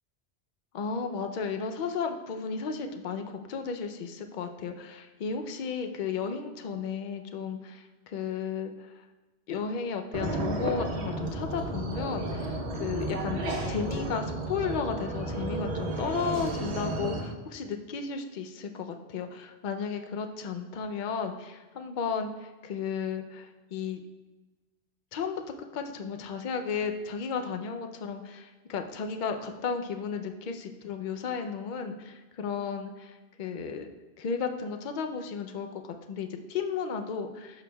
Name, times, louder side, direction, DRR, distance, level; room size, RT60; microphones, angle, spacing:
voice 1, 0.7-9.0 9.5-24.0 25.1-33.9 34.2-35.8 36.1-37.6, left 6 dB, 55° left, 6 dB, 0.7 m, -34 dB
sound 1, 10.1-17.2, right 2 dB, 90° right, 1.4 m, -32 dB
11.5 x 6.1 x 2.3 m, 1.2 s
omnidirectional pair, 1.1 m